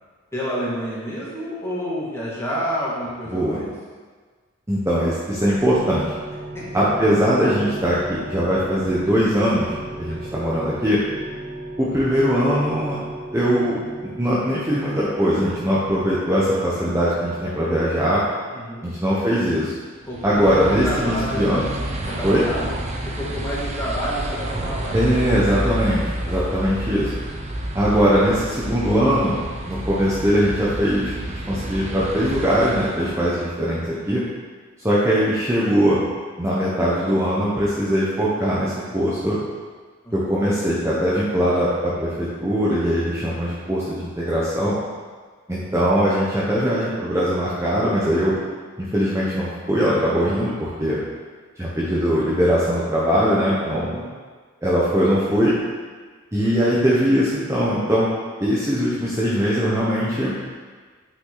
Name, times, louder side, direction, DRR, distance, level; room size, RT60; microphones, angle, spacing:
voice 1, 0.3-3.7 6.5-6.7 10.1-10.3 18.5-18.9 20.1-21.4 22.1-22.6 23.1-25.5 26.3-26.4 40.0-40.3 53.6-54.1 56.4-56.5, equal, 15° left, -8 dB, 2.3 m, -29 dB
voice 2, 4.7-6.1 6.7-11.0 11.8-13.0 13.3-13.8 14.2-18.2 18.8-19.7 20.2-21.6 22.2-22.4 24.9-27.1 27.7-29.4 29.6-31.1 31.5-34.2 34.8-36.0 36.4-39.4 40.1-44.8 45.5-48.4 48.8-51.0 51.6-53.9 54.6-55.5 56.3-58.1 58.4-60.4, equal, 15° right, -8 dB, 1.1 m, -21 dB
sound 1, 5.3-17.9, right 1 dB, 65° right, 1.7 m, -36 dB
sound 2, 20.0-33.5, right 1 dB, 35° right, 0.8 m, -29 dB
8.7 x 5.9 x 4.0 m, 1.5 s
head